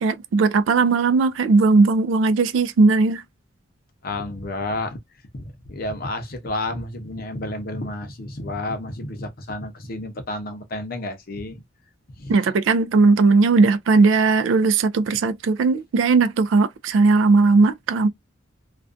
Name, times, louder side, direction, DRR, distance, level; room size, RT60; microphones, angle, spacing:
voice 1, 0.0-3.2 12.3-18.1, right 3 dB, 80° right, 0.3 m, -18 dB
voice 2, 4.0-5.0 5.3-11.6 12.2-12.3, left 2 dB, 50° left, 0.6 m, -31 dB
2.4 x 2.2 x 2.4 m
head